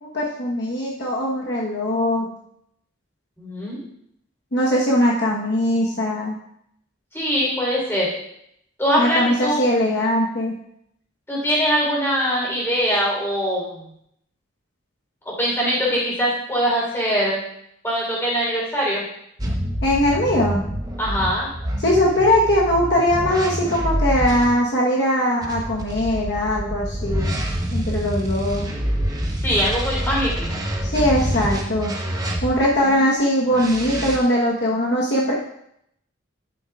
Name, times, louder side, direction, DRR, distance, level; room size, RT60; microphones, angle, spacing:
voice 1, 0.0-2.3 4.5-6.4 9.0-10.5 19.8-20.6 21.8-27.4 27.7-28.7 30.8-31.9 32.4-35.3, left 1 dB, 55° left, -3 dB, 1.1 m, -20 dB
voice 2, 3.4-3.8 7.1-8.1 8.8-9.6 11.3-13.8 15.3-17.4 17.8-19.0 21.0-21.5 29.4-30.6 32.8-33.1, equal, 10° left, -5 dB, 3.6 m, -22 dB
sound 1, 19.4-24.5 25.4-32.8 33.5-34.2, equal, 20° right, 0.9 m, -26 dB
11.0 x 9.0 x 2.4 m, 0.75 s
head